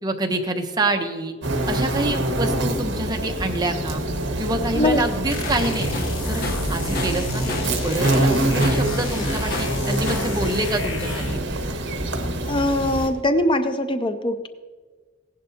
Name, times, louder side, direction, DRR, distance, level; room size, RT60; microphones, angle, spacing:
voice 1, 0.0-1.3 1.7-4.0 4.4-5.9 6.3-11.5, right 2 dB, 20° right, 3 dB, 0.9 m, -27 dB
sound 1, 1.4-13.1, right 1 dB, 60° right, 1.4 m, -25 dB
sound 2, 5.3-11.5, left 1 dB, 75° left, 1.1 m, -31 dB
Tools, 5.4-5.7 5.9-7.8 8.0-8.9 9.5-10.4, left 2 dB, 50° left, 1.0 m, -32 dB
voice 2, 12.4-14.5, left 1 dB, 25° left, 9 dB, 0.5 m, -22 dB
16.0 x 11.0 x 2.8 m, 1.4 s
head